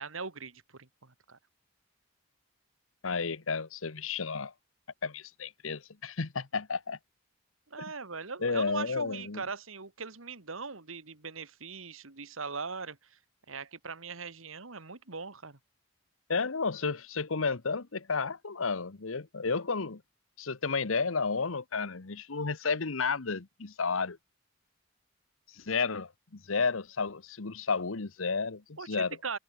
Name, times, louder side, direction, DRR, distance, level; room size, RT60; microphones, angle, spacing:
voice 1, 0.0-1.4 7.7-13.2 13.5-15.6 28.8-29.4, right 4 dB, 90° right, 2.2 m, -40 dB
voice 2, 3.0-4.5 5.0-7.0 8.4-9.4 16.3-20.0 20.4-24.2 25.5-29.2, left 4 dB, 90° left, 1.1 m, -32 dB
head